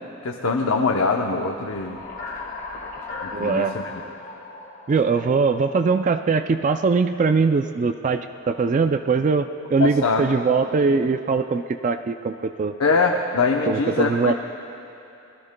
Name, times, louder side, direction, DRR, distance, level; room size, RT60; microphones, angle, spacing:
voice 1, 0.2-2.0 3.2-3.9 9.8-10.2 12.8-14.3, left 4 dB, 80° left, 1 dB, 0.7 m, -23 dB
sound 1, 1.4-6.1, left 3 dB, 45° left, 1.7 m, -37 dB
voice 2, 3.3-3.8 4.9-12.7 13.7-14.3, right 4 dB, 35° right, 9 dB, 0.3 m, -21 dB
25.5 x 19.5 x 2.2 m, 2.8 s
head